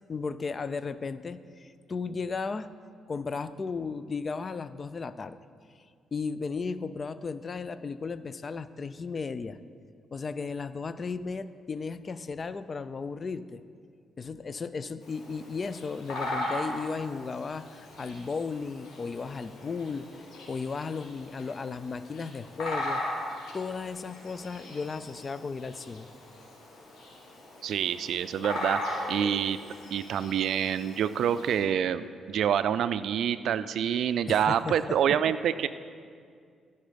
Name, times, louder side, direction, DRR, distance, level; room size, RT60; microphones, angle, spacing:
voice 1, 0.0-2.7 3.1-5.4 6.1-9.6 10.1-13.6 14.2-23.0 23.5-26.1 34.3-35.2, left 4 dB, 35° left, 14 dB, 0.3 m, -35 dB
Bird vocalization bird call bird song, 15.0-31.6, left 1 dB, 85° left, 2.9 m, -39 dB
voice 2, 27.6-29.6 29.9-35.7, right 9 dB, 70° right, 14 dB, 0.3 m, -27 dB
14.0 x 5.4 x 5.1 m, 2.2 s
cardioid pair, 110°, 0 cm